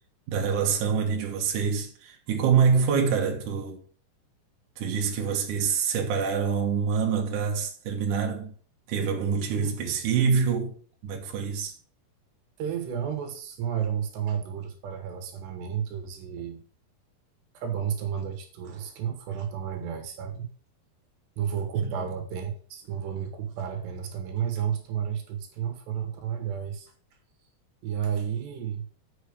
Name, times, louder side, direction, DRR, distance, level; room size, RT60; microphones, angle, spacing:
voice 1, 0.3-3.8 4.8-8.5 8.9-10.7 11.0-11.7 21.7-22.0, right 6 dB, 60° right, 2.6 m, -26 dB
voice 2, 9.5-9.9 12.6-16.6 17.6-20.5 21.4-26.9 27.8-28.9, right 8 dB, 80° right, 3.5 m, -32 dB
8.1 x 6.0 x 5.0 m
omnidirectional pair, 4.9 m